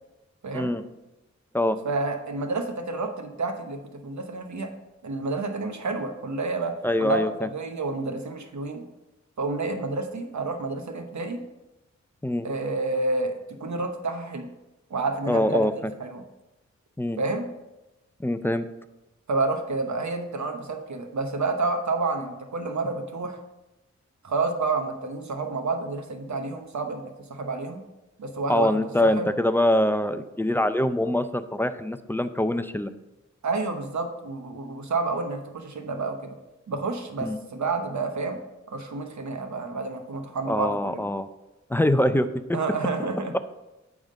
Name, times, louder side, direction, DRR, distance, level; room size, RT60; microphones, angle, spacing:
voice 1, 1.8-4.7 5.0-8.8 9.4-11.4 12.4-14.5 14.9-16.2 17.2-17.5 19.3-23.4 24.2-27.8 28.2-28.7 29.0-29.3 33.4-36.4 36.7-38.4 38.7-41.1 42.5-43.3, right 3 dB, 70° right, 6 dB, 1.0 m, -29 dB
voice 2, 6.8-7.5 12.2-12.5 15.3-15.7 17.0-17.2 18.2-18.7 28.5-32.9 37.2-37.4 40.5-41.3 41.7-42.6, left 1 dB, 5° left, 11 dB, 0.4 m, -24 dB
8.8 x 3.6 x 5.3 m, 1.0 s
wide cardioid pair, 65°, 29 cm